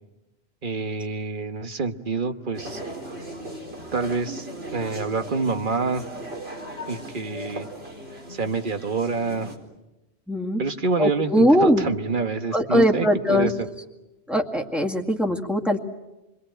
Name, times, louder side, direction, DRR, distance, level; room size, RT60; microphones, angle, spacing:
voice 1, 0.6-2.8 3.9-4.5 4.7-6.1 6.9-7.7 8.3-9.5 10.6-13.5, right 4 dB, 50° right, 8 dB, 1.5 m, -27 dB
sound 1, 2.5-9.6, right 1 dB, 70° right, 4.7 m, -38 dB
voice 2, 10.3-10.6 11.0-11.9 12.5-13.5 14.3-15.8, equal, ahead, 1 dB, 2.1 m, -21 dB
29.0 x 22.5 x 9.1 m, 1.0 s
omnidirectional pair, 1.1 m